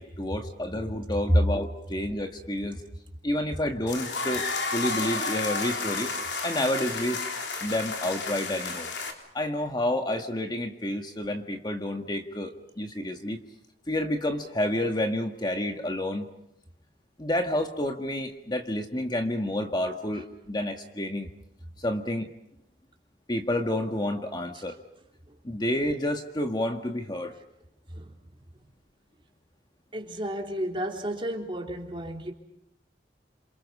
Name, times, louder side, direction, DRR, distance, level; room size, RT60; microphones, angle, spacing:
voice 1, 0.0-2.8 3.2-4.5 4.7-6.1 6.4-7.2 7.6-8.9 9.3-13.4 13.9-16.3 17.2-21.3 21.8-22.3 23.3-24.8 25.4-27.3, left 1 dB, 25° left, 4 dB, 1.7 m, -29 dB
sound 1, 3.9-9.1, left 4 dB, 80° left, 3.8 m, -31 dB
voice 2, 29.9-32.3, right 1 dB, 30° right, 1 dB, 3.5 m, -33 dB
28.5 x 27.5 x 5.6 m, 0.79 s
head